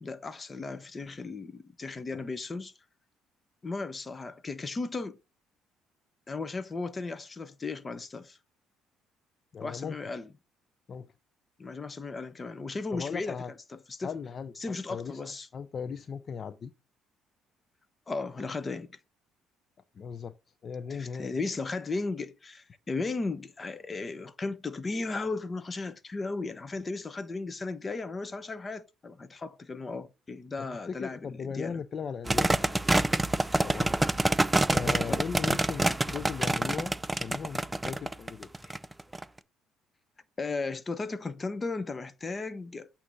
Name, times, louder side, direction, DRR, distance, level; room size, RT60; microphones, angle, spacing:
voice 1, 0.0-2.7 3.6-5.2 6.3-8.4 9.6-10.3 11.6-13.4 13.9-14.1 14.6-15.5 18.1-19.0 20.9-31.8 35.0-35.2 40.4-42.9, left 3 dB, 30° left, 0.9 m, -35 dB
voice 2, 9.5-9.9 10.9-11.1 12.9-13.5 14.0-15.2 15.5-16.7 19.9-20.3 20.6-21.4 30.6-33.9 34.7-38.8, left 6 dB, 45° left, 0.5 m, -38 dB
sound 1, 32.3-39.2, right 2 dB, 10° right, 0.4 m, -26 dB
8.4 x 2.9 x 5.1 m
supercardioid pair, 80°, 0 cm